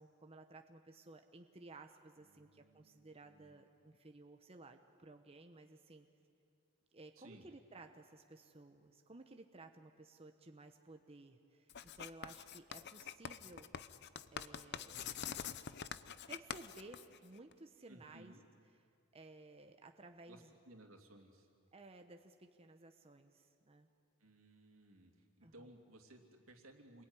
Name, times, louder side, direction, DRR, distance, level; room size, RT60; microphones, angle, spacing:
voice 1, 0.0-6.1 6.9-13.7 14.3-15.1 16.3-18.3 19.1-20.5 21.7-23.9 25.4-25.5, right 2 dB, 30° right, 6 dB, 1.0 m, -57 dB
voice 2, 2.2-3.7 7.1-7.5 17.9-18.4 20.3-21.5 24.2-27.1, right 1 dB, 80° right, 3 dB, 3.0 m, -60 dB
Writing, 11.7-17.5, left 8 dB, 55° left, 0.8 m, -46 dB
28.0 x 21.5 x 9.9 m, 2.4 s
head